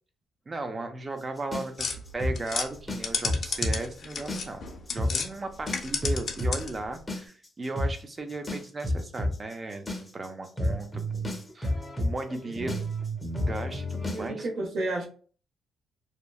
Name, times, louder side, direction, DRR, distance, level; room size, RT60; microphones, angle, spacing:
voice 1, 0.5-4.6 4.9-12.8 13.4-14.5, right 2 dB, 30° right, 7 dB, 0.5 m, -36 dB
sound 1, 1.5-3.8 4.1-4.7 5.0-5.1 5.7-14.3, left 1 dB, 10° left, 0.7 m, -30 dB
sound 2, 1.8-5.3 5.6-6.9, left 5 dB, 55° left, 0.6 m, -32 dB
voice 2, 14.1-15.1, right 2 dB, 65° right, 1 dB, 0.9 m, -32 dB
2.9 x 2.1 x 2.3 m, 0.42 s
cardioid pair, 90°, 0 cm